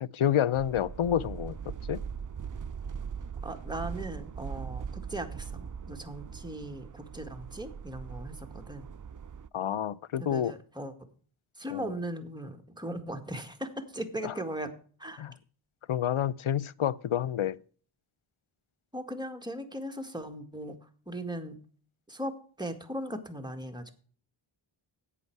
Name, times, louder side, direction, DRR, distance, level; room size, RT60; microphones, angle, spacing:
voice 1, 0.0-1.6 1.9-2.0 9.5-10.5 11.7-11.9 14.2-14.3 15.2-15.3 15.9-17.6, left 10 dB, 75° left, 0.6 m, -29 dB
sound 1, 0.5-9.5, right 7 dB, 40° right, 0.5 m, -40 dB
voice 2, 3.4-8.9 10.3-10.9 11.6-14.7 15.0-15.3 18.9-20.8 21.1-21.6 22.1-23.9, right 1 dB, 10° right, 1.8 m, -38 dB
11.0 x 8.5 x 4.7 m
wide cardioid pair, 45°, 49 cm